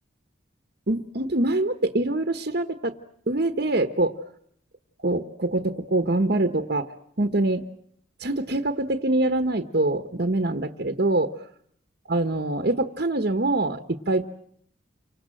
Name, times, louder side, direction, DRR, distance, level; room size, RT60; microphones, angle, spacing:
voice 1, 0.9-2.9 3.3-4.2 5.0-7.6 8.2-11.3 12.1-14.3, right 2 dB, 50° right, 7 dB, 1.2 m, -24 dB
29.5 x 25.5 x 7.7 m, 0.66 s
head